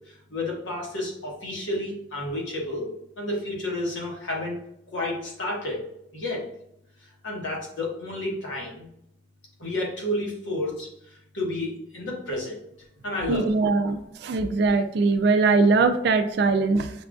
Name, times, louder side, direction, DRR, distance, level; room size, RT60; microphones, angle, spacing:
voice 1, 0.3-2.9 3.2-4.6 4.9-5.8 6.1-6.4 7.2-8.9 9.6-10.9 11.3-12.6 13.0-13.5 13.8-13.9, left 1 dB, 85° left, -2 dB, 1.2 m, -30 dB
voice 2, 13.3-16.9, right 3 dB, 60° right, 7 dB, 0.3 m, -21 dB
5.6 x 2.4 x 2.3 m, 0.78 s
head